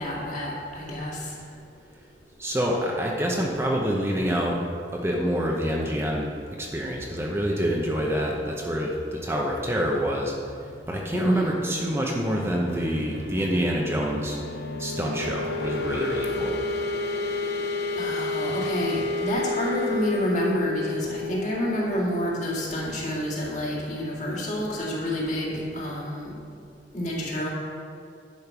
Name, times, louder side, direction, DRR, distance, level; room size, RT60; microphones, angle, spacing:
voice 1, 0.0-1.4 11.1-11.5 18.0-26.3 26.9-27.5, equal, 45° left, -5 dB, 2.2 m, -28 dB
voice 2, 2.4-4.6 4.9-10.3 10.9-14.4 14.8-16.6, equal, 15° right, -2 dB, 0.8 m, -27 dB
sound 1, 10.9-23.5, left 3 dB, 60° left, 0.9 m, -31 dB
10.5 x 5.2 x 6.0 m, 2.3 s
head